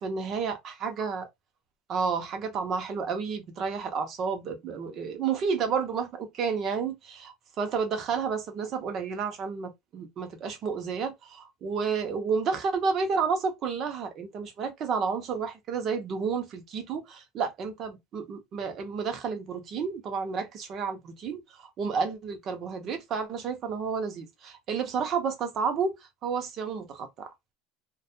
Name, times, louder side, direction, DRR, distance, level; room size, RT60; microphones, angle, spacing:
voice 1, 0.0-1.3 1.9-25.9 26.2-27.3, right 5 dB, 40° right, 0.7 m, -31 dB
2.3 x 2.2 x 2.7 m
cardioid pair, 145°, 0 cm